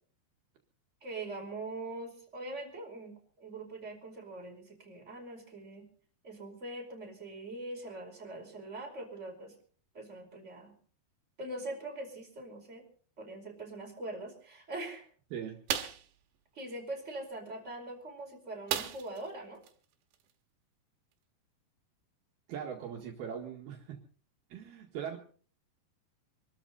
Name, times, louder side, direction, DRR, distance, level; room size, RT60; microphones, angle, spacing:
voice 1, 1.0-5.9 6.2-9.5 9.9-10.7 11.4-12.8 13.2-15.0 16.5-19.6, right 2 dB, 15° right, 1 dB, 5.0 m, -42 dB
sound 1, 15.7-16.1 18.7-19.3 19.6-19.7 20.1-20.3, right 10 dB, 90° right, 3.7 m, -34 dB
voice 2, 22.5-24.0 24.5-25.2, right 8 dB, 65° right, 1 dB, 3.7 m, -40 dB
26.0 x 13.5 x 4.1 m, 0.44 s
omnidirectional pair, 4.9 m